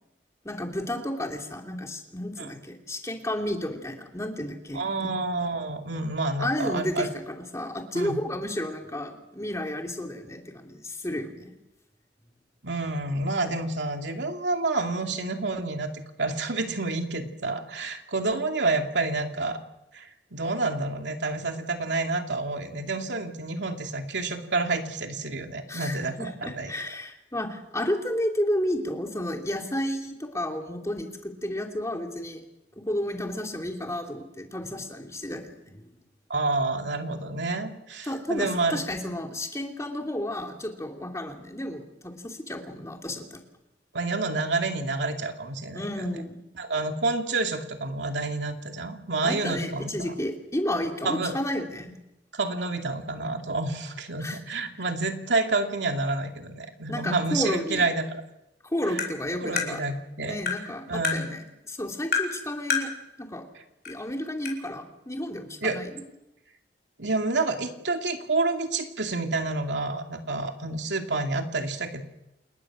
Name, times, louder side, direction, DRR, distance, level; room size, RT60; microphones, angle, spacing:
voice 1, 0.4-5.1 6.4-11.5 25.7-32.4 32.8-35.8 38.1-43.4 45.7-46.4 49.2-51.9 54.2-54.4 56.9-57.8 58.6-59.8 60.2-62.9 63.2-63.4 63.9-66.0, left 1 dB, 15° left, 2 dB, 2.9 m, -32 dB
voice 2, 4.7-7.1 7.9-8.2 12.6-19.6 19.9-26.7 36.3-38.8 43.9-45.9 46.6-49.9 51.0-51.3 52.3-58.2 59.3-60.4 60.9-61.3 65.6-65.8 67.0-72.0, right 3 dB, 80° right, 4 dB, 2.6 m, -29 dB
Tap, 59.0-59.1 59.6-59.7 60.5-60.6 61.0-61.2 62.1-62.3 62.7-62.9 63.9-64.0 64.5-64.6, left 6 dB, 60° left, 5.2 m, -26 dB
28.5 x 21.0 x 6.3 m, 0.90 s
head